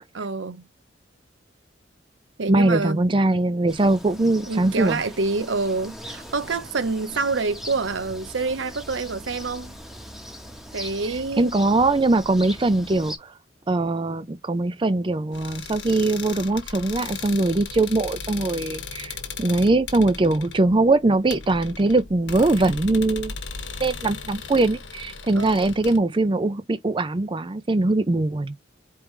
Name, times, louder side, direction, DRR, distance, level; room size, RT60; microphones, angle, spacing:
voice 1, 0.1-0.6 2.4-3.1 4.4-9.7 10.7-11.5 25.3-25.6, right 3 dB, 75° right, 0.7 m, -27 dB
voice 2, 2.5-5.0 11.4-13.3 13.7-23.3 23.8-28.5, right 2 dB, 25° right, 0.5 m, -21 dB
sound 1, 3.7-13.2, equal, ahead, 1.1 m, -40 dB
sound 2, 15.3-26.0, left 5 dB, 80° left, 1.5 m, -37 dB
4.7 x 3.4 x 3.2 m
head